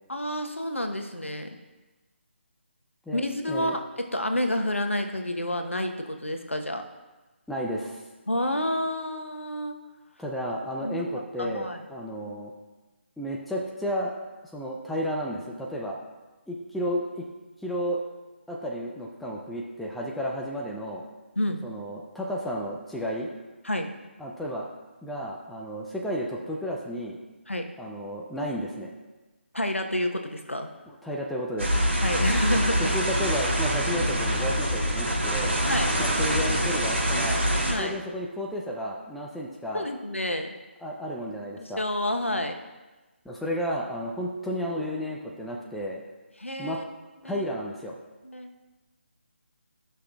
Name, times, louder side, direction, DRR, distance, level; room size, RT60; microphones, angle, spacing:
voice 1, 0.1-1.5 3.1-3.8 4.1-6.8 8.3-9.8 10.8-11.1 11.4-11.8 21.4-21.6 23.6-23.9 27.5-27.7 29.5-30.7 32.0-32.9 35.7-35.9 37.7-38.0 39.7-40.5 41.6-42.6 46.4-46.8 47.2-47.5 48.2-48.5, left 1 dB, 85° left, 5 dB, 1.0 m, -29 dB
voice 2, 3.1-3.8 7.5-8.0 10.2-12.5 13.2-14.1 14.5-16.0 16.5-17.3 17.6-18.0 18.5-21.0 21.6-23.3 24.2-24.7 25.0-27.2 27.8-28.9 30.9-31.7 32.9-35.6 36.0-37.5 37.8-39.9 40.8-41.8 43.2-46.0 46.6-46.8 47.2-48.0, equal, ahead, -2 dB, 0.4 m, -32 dB
sound 1, 31.6-37.7, equal, 80° right, 2.9 m, -25 dB
15.5 x 5.8 x 2.4 m, 1.2 s
figure-of-eight pair, 150°, 7 cm